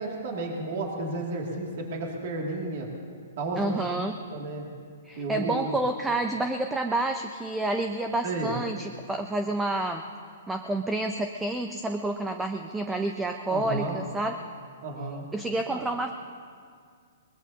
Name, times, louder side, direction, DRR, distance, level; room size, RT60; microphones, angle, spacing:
voice 1, 0.0-2.9 3.4-4.0 4.3-4.7 5.2-5.8 8.2-8.5 13.5-14.0 14.8-15.3 15.7-15.8, right 2 dB, 45° right, 0 dB, 2.3 m, -32 dB
voice 2, 3.6-4.2 5.0-10.0 10.5-14.4 15.3-16.1, right 2 dB, 5° right, 5 dB, 0.4 m, -29 dB
22.5 x 21.0 x 2.8 m, 2.1 s
hypercardioid pair, 170°, 0 cm